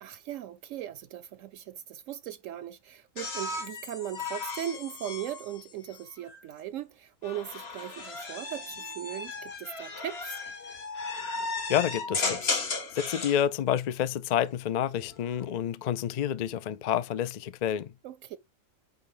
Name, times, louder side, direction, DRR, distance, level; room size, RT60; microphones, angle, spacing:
voice 1, 0.0-10.4 18.0-18.4, right 11 dB, 75° right, 0.9 m, -38 dB
sound 1, 3.2-6.4 7.2-13.4 14.9-15.4, left 3 dB, 50° left, 1.6 m, -35 dB
voice 2, 11.7-12.6 12.9-17.9, left 10 dB, 80° left, 0.3 m, -29 dB
8.6 x 3.5 x 3.7 m
omnidirectional pair, 1.4 m